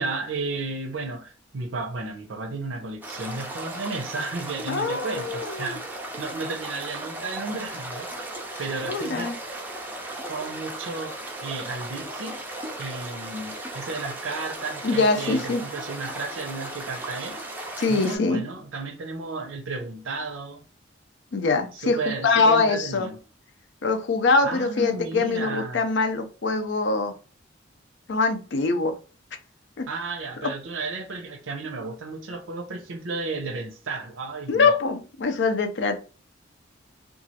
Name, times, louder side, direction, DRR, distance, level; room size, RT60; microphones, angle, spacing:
voice 1, 0.0-5.8 6.2-8.1 8.6-9.3 10.3-12.4 12.8-17.4 17.9-20.6 21.8-23.2 24.4-25.8 29.9-34.7, right 3 dB, 90° right, 0.6 m, -33 dB
sound 1, 3.0-18.2, right 1 dB, 10° right, 0.4 m, -36 dB
voice 2, 4.7-5.8 8.9-9.4 14.8-15.7 17.8-18.4 21.3-23.1 23.8-27.1 28.1-29.0 29.8-29.9 30.4-30.5 34.5-36.0, left 3 dB, 65° left, 0.5 m, -23 dB
3.0 x 2.3 x 2.7 m
head